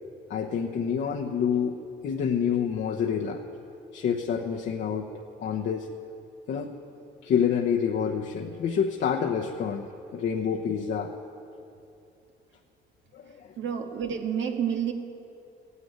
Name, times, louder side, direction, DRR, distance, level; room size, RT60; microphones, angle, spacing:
voice 1, 0.3-3.4 3.9-5.1 5.4-5.9 6.5-6.7 7.2-9.9 10.1-11.1 13.1-13.5, left 7 dB, 65° left, 0 dB, 1.0 m, -27 dB
voice 2, 13.6-14.9, right 8 dB, 70° right, 4 dB, 1.6 m, -29 dB
15.5 x 9.9 x 9.5 m, 2.7 s
cardioid pair, 90°, 20 cm